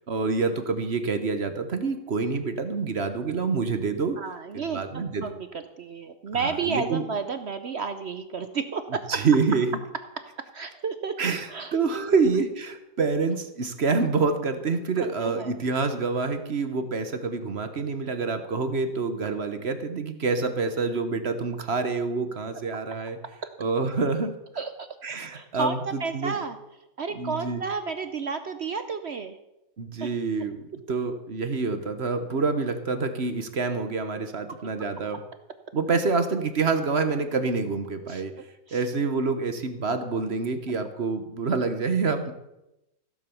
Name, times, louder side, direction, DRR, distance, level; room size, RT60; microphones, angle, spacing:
voice 1, 0.1-4.2 4.5-5.3 6.3-7.0 9.1-9.7 11.2-23.2 23.6-24.3 25.0-26.3 27.1-27.6 29.8-35.2 35.7-38.3 38.7-42.3, right 4 dB, 40° right, 9 dB, 1.1 m, -27 dB
voice 2, 4.2-9.2 10.5-11.2 11.5-12.2 15.0-15.6 24.6-24.9 25.3-26.6 27.0-29.4 30.0-30.1 38.1-38.2 38.7-38.8, right 5 dB, 60° right, 9 dB, 0.6 m, -32 dB
15.5 x 7.4 x 7.0 m, 0.91 s
omnidirectional pair, 2.0 m